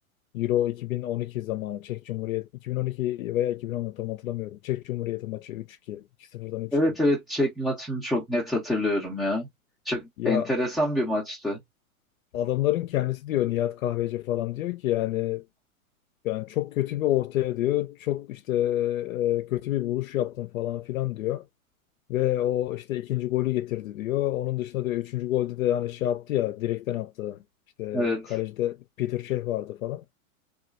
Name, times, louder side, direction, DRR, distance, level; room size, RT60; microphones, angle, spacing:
voice 1, 0.3-6.0 6.3-6.8 10.2-10.5 12.3-15.4 16.2-21.4 22.1-27.4 27.8-30.0, left 14 dB, 70° left, 0.5 m, -28 dB
voice 2, 6.7-9.5 9.8-11.6 27.9-28.3, left 1 dB, ahead, 0.5 m, -26 dB
2.9 x 2.3 x 2.4 m
hypercardioid pair, 115°, 43 cm